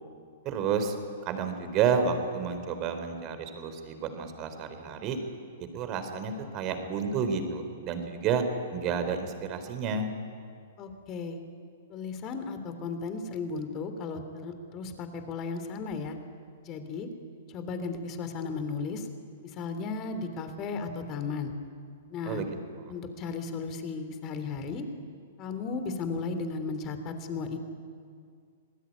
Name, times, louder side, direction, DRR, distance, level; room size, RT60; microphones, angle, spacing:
voice 1, 0.4-0.9 1.3-5.2 5.7-8.4 8.7-10.1 22.3-22.5, right 6 dB, 35° right, 8 dB, 4.0 m, -30 dB
voice 2, 10.8-11.4 11.9-16.2 16.6-17.1 17.5-19.1 19.5-21.5 22.1-22.4 22.9-24.8 25.4-27.6, left 4 dB, 35° left, 8 dB, 3.6 m, -35 dB
27.0 x 20.0 x 9.5 m, 2.2 s
hypercardioid pair, 115°, 0 cm